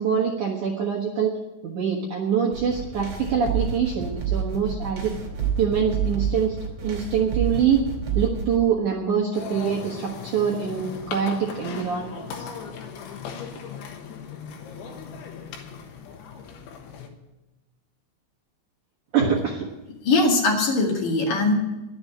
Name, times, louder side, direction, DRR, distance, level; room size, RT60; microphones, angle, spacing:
voice 1, 0.0-1.3 1.6-5.1 5.6-6.6 6.8-7.8 8.1-12.5 19.1-19.7, right 7 dB, 75° right, -3 dB, 1.8 m, -24 dB
sound 1, 2.5-8.6, right 7 dB, 40° right, 3.1 m, -29 dB
sound 2, 9.3-17.1, left 6 dB, 75° left, 3.5 m, -38 dB
voice 2, 20.0-21.5, left 2 dB, 50° left, -1 dB, 3.1 m, -21 dB
11.5 x 7.9 x 9.8 m, 1.0 s
omnidirectional pair, 5.7 m